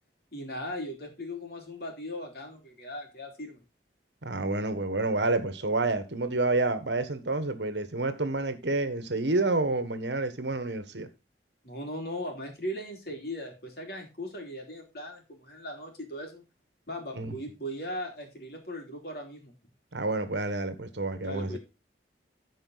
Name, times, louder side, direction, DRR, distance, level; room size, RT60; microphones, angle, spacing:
voice 1, 0.3-3.6 11.6-16.4 16.9-19.5 21.2-21.6, equal, 55° left, 3.1 m, -38 dB
voice 2, 4.2-11.1 17.2-17.3 19.9-21.6, right 2 dB, 70° right, 1.3 m, -29 dB
14.5 x 5.0 x 4.0 m
head